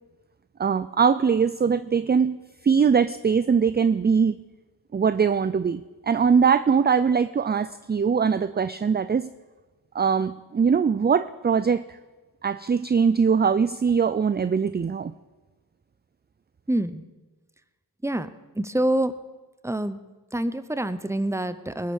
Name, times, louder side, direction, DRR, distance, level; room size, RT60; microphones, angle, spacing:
voice 1, 0.6-2.4 2.6-4.4 4.9-9.3 9.9-12.0 12.4-15.1, right 6 dB, 25° right, 14 dB, 0.4 m, -22 dB
voice 2, 16.7-17.0 18.0-18.3 18.6-19.1 19.6-20.0 20.3-21.9, right 1 dB, 5° right, 13 dB, 0.8 m, -26 dB
19.5 x 8.5 x 6.3 m, 1.3 s
wide cardioid pair, 85°, 41 cm